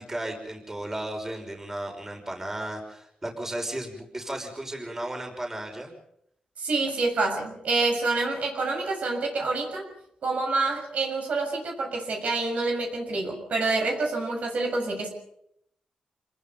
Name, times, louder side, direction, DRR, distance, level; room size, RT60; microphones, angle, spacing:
voice 1, 0.0-5.9, right 1 dB, 20° right, 2 dB, 5.8 m, -34 dB
voice 2, 6.6-9.9 10.2-15.1, right 3 dB, 70° right, 2 dB, 6.7 m, -27 dB
27.5 x 20.5 x 5.5 m, 0.73 s
cardioid pair, 95°, 2 cm